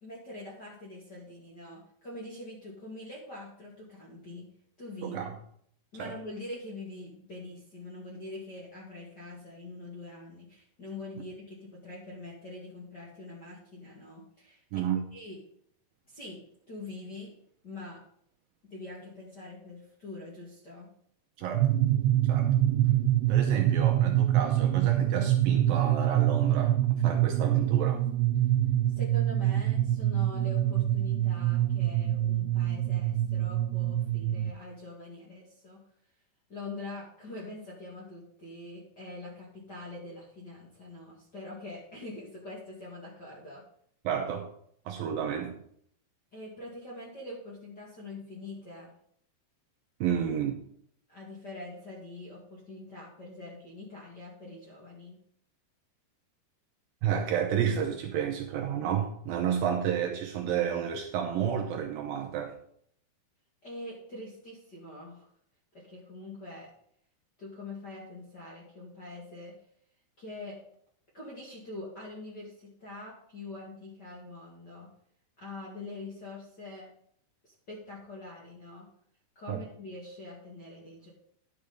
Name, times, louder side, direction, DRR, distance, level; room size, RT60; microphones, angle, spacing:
voice 1, 0.0-4.5 4.8-5.2 5.9-14.8 15.1-15.4 16.1-16.4 16.7-17.3 17.6-18.0 18.7-20.9 28.9-35.8 36.5-43.6 46.3-48.9 51.1-55.2 63.6-65.3 65.7-66.7 67.4-69.6 70.2-70.6 71.1-74.9 75.4-76.9 77.4-78.9 79.4-81.1, left 2 dB, 35° left, -5 dB, 1.8 m, -44 dB
voice 2, 5.0-5.4 5.9-6.2 14.7-15.1 21.4-21.7 22.3-22.6 23.3-26.8 27.0-28.0 44.0-44.5 44.9-45.6 50.0-50.6 57.0-62.5 79.5-79.6, right 8 dB, 75° right, 2 dB, 2.3 m, -31 dB
sound 1, 21.5-34.5, right 12 dB, 90° right, 2.7 m, -25 dB
10.5 x 7.0 x 5.1 m, 0.66 s
omnidirectional pair, 4.7 m